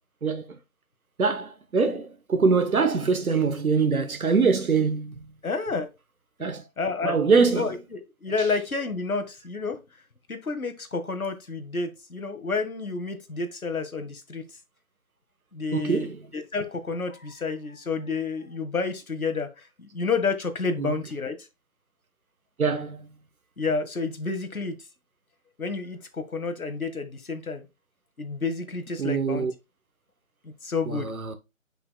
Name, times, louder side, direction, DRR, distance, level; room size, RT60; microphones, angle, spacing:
voice 1, 1.2-5.3 6.4-6.6 7.0-7.6 8.4-8.5 15.7-16.2 20.8-21.0 22.6-23.1 29.0-29.5 30.9-31.4, right 5 dB, 85° right, 1.1 m, -24 dB
voice 2, 5.4-5.9 6.8-7.2 7.5-9.8 10.3-14.4 15.5-21.4 23.6-24.7 25.6-27.6 28.2-29.5 30.4-31.1, left 4 dB, 80° left, 1.7 m, -30 dB
7.7 x 5.6 x 2.2 m
figure-of-eight pair, 175°, 42 cm